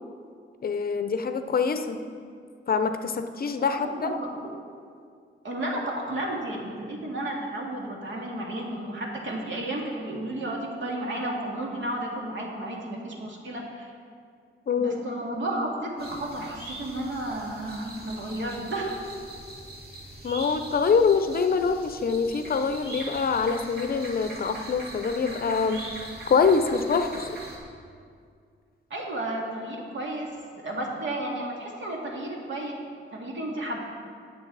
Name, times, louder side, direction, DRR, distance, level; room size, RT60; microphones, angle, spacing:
voice 1, 0.6-2.0 2.7-4.2 14.7-15.0 20.2-25.8 26.3-27.3, left 5 dB, 45° left, 8 dB, 0.6 m, -25 dB
voice 2, 3.7-4.4 5.4-13.9 14.8-18.9 28.9-30.3 30.6-32.7 33.1-33.8, right 1 dB, 65° right, -1 dB, 2.2 m, -32 dB
sound 1, 16.0-27.6, right 1 dB, 50° right, 2.3 m, -42 dB
18.0 x 6.7 x 4.0 m, 2.2 s
wide cardioid pair, 120°, 21 cm